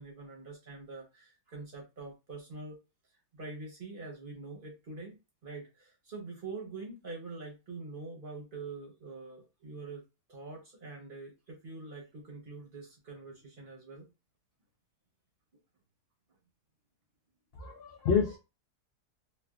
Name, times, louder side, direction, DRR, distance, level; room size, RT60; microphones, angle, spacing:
voice 1, 0.0-2.8 3.3-10.0 10.3-14.1, right 3 dB, 40° right, -1 dB, 0.8 m, -45 dB
voice 2, 17.6-18.4, left 6 dB, 85° left, 0 dB, 0.5 m, -28 dB
3.2 x 2.2 x 2.3 m, 0.27 s
omnidirectional pair, 1.7 m